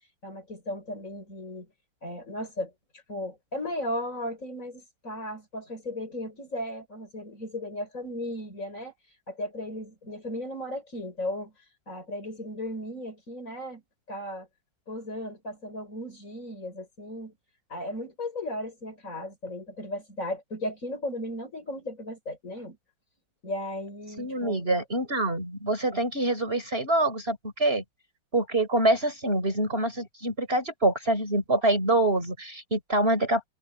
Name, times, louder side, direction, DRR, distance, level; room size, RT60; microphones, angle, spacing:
voice 1, 0.2-1.7 2.0-2.7 3.1-8.9 9.3-11.5 11.9-13.8 14.1-14.5 14.9-17.3 17.7-22.8 23.4-24.6, left 1 dB, 40° left, 5.2 m, -36 dB
voice 2, 24.2-27.8 28.3-33.5, right 1 dB, 30° right, 5.0 m, -25 dB
omnidirectional pair, 2.1 m